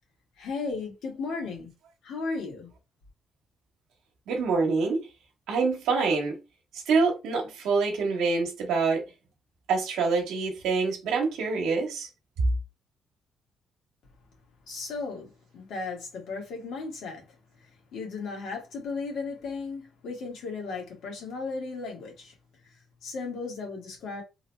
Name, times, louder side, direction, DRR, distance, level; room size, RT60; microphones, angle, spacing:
voice 1, 0.4-1.7 2.0-2.7 14.7-17.2 17.9-22.3 23.0-24.2, left 4 dB, 80° left, 1.7 m, -35 dB
voice 2, 4.3-5.0 5.5-6.3 6.9-9.0 9.7-12.1, right 4 dB, 90° right, 1.2 m, -26 dB
3.8 x 2.9 x 2.2 m
cardioid pair, 90°, 0 cm